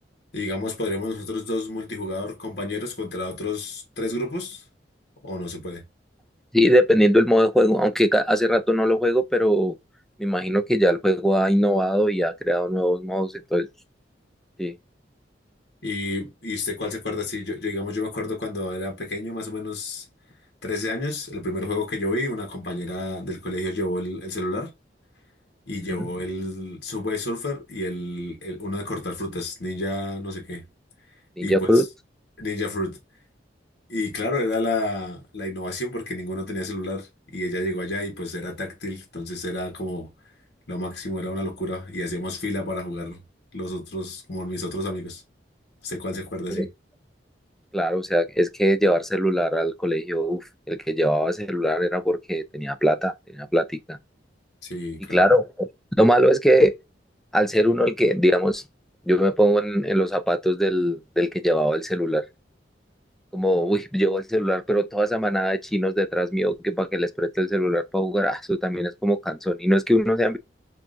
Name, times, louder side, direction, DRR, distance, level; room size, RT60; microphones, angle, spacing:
voice 1, 0.3-4.6 5.2-5.8 15.8-20.1 20.6-24.7 25.7-30.7 31.4-31.8 32.4-33.0 33.9-40.1 40.7-43.2 43.5-45.2 45.8-46.7 54.6-55.2, left 2 dB, 65° left, 1.3 m, -30 dB
voice 2, 6.5-9.8 10.2-13.7 14.6-14.7 25.9-26.0 31.4-31.9 46.5-46.7 47.7-50.4 50.7-54.0 55.1-55.7 56.0-56.7 57.3-58.6 59.1-62.2 63.3-70.4, equal, ahead, 0.4 m, -21 dB
5.6 x 2.5 x 2.5 m
head